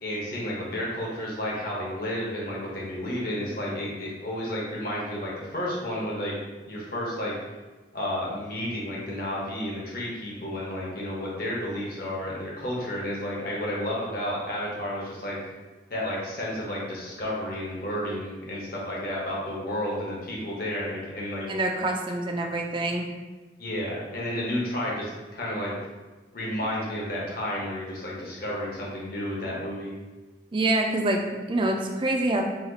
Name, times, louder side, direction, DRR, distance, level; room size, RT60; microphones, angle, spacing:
voice 1, 0.0-6.3 6.7-7.3 7.9-15.4 15.9-21.5 23.6-25.7 26.3-29.9, left 1 dB, 50° left, -4 dB, 1.0 m, -31 dB
voice 2, 21.5-23.1 30.5-32.4, right 2 dB, 25° right, 2 dB, 0.3 m, -26 dB
4.2 x 2.4 x 3.9 m, 1.2 s
head